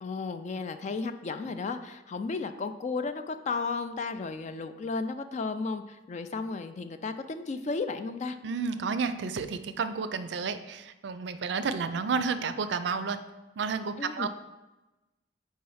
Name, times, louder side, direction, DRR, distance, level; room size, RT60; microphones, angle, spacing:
voice 1, 0.0-8.4 14.0-14.3, left 4 dB, 40° left, 9 dB, 0.3 m, -34 dB
voice 2, 8.4-13.3 13.6-14.3, right 5 dB, 65° right, 11 dB, 0.4 m, -31 dB
4.7 x 4.3 x 5.5 m, 1.0 s
head